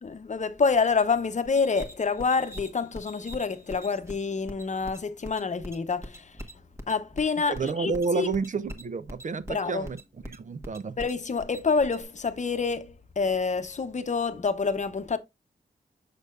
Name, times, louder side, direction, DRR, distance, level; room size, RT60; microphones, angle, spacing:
voice 1, 0.0-6.4 6.9-8.3 9.5-9.9 11.0-15.2, left 4 dB, 45° left, 0.8 m, -27 dB
sound 1, 1.5-12.0, equal, 15° right, 1.3 m, -43 dB
voice 2, 7.5-10.0 10.3-11.0, right 5 dB, 50° right, 0.5 m, -30 dB
6.6 x 6.4 x 2.4 m
wide cardioid pair, 105°, 17 cm